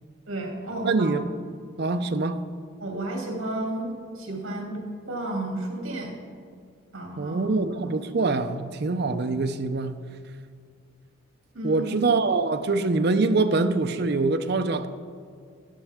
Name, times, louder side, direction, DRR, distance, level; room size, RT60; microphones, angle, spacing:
voice 1, 0.3-1.1 2.8-4.8 5.0-6.1 6.9-7.6 11.5-11.8, right 1 dB, 70° right, 2.5 m, -32 dB
voice 2, 0.8-1.2 1.8-2.4 7.2-10.0 11.6-14.9, right 3 dB, 50° right, 0.5 m, -24 dB
13.0 x 11.0 x 3.5 m
head